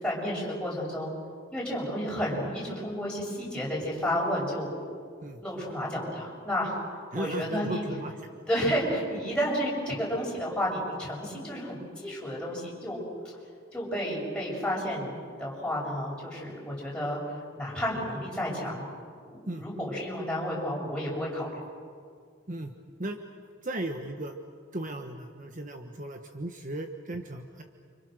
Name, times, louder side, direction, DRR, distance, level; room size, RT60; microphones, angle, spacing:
voice 1, 0.0-1.1 1.5-4.7 5.4-6.8 7.1-7.9 8.5-13.0 13.7-17.2 17.6-18.9 19.3-21.5, equal, 5° left, -5 dB, 7.5 m, -31 dB
voice 2, 7.1-8.2 8.6-8.7 19.5-19.6 22.5-22.7 23.0-23.2 23.6-24.3 24.7-27.6, right 1 dB, 40° right, 5 dB, 1.3 m, -36 dB
29.5 x 27.0 x 6.5 m, 2.1 s
head